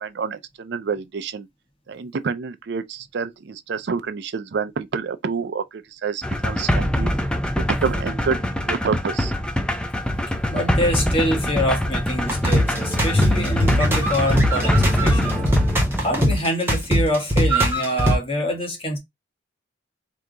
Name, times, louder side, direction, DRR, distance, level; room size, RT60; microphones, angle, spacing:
voice 1, 0.0-1.5 1.9-7.1 7.6-8.4 8.7-9.3, right 5 dB, 60° right, 0.4 m, -28 dB
sound 1, 6.2-16.4, equal, 5° left, 0.4 m, -24 dB
voice 2, 10.5-15.5 16.0-19.0, equal, 30° left, 1.3 m, -25 dB
sound 2, 12.3-18.2, equal, 10° right, 1.0 m, -20 dB
3.4 x 2.8 x 3.7 m
head